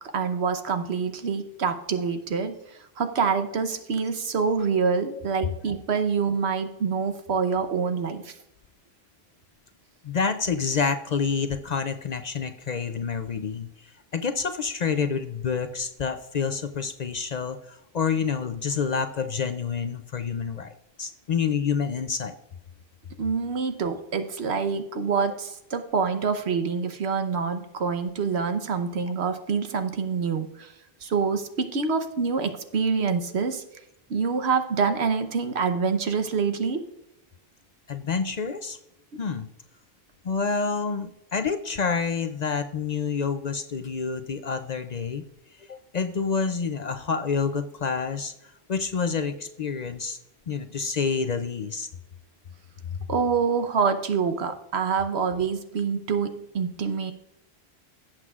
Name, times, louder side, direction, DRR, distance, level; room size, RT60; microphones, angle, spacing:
voice 1, 0.1-8.3 23.2-30.7 31.0-33.6 34.1-36.8 53.1-57.1, right 5 dB, 85° right, 8 dB, 1.2 m, -26 dB
voice 2, 10.0-20.7 21.0-22.3 37.9-38.8 39.2-39.5 40.2-45.2 45.6-48.3 48.7-50.2 50.5-51.9 52.9-53.0, left 5 dB, 50° left, 9 dB, 0.5 m, -28 dB
17.0 x 7.5 x 2.4 m, 0.83 s
omnidirectional pair, 1.1 m